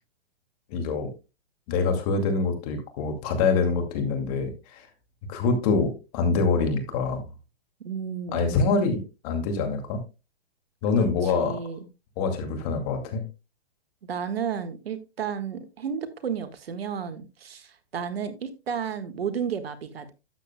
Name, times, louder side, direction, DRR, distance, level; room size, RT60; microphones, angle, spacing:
voice 1, 0.7-1.1 1.7-4.9 5.3-7.2 8.3-10.0 10.8-11.6 12.2-13.2, left 4 dB, 40° left, 6 dB, 2.3 m, -25 dB
voice 2, 7.8-8.9 10.9-11.8 14.1-20.1, right 7 dB, 70° right, 10 dB, 1.6 m, -32 dB
12.5 x 8.1 x 2.2 m, 0.27 s
hypercardioid pair, 135°, 31 cm